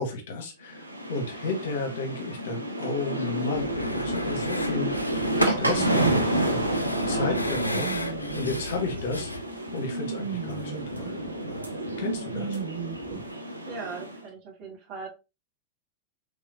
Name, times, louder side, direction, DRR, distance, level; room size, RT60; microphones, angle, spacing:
voice 1, 0.0-9.3 9.7-11.1 11.5-11.6 12.0-12.6, left 3 dB, 55° left, 4 dB, 1.1 m, -33 dB
sound 1, 0.7-14.2, right 1 dB, 85° right, 0.5 m, -30 dB
sound 2, 3.5-9.4, left 2 dB, 85° left, 0.3 m, -36 dB
sound 3, 4.1-13.2, right 6 dB, 55° right, 1.1 m, -37 dB
voice 2, 13.6-15.1, right 4 dB, 40° right, 0 dB, 1.6 m, -39 dB
3.4 x 3.3 x 2.6 m, 0.28 s
figure-of-eight pair, 90°, 0 cm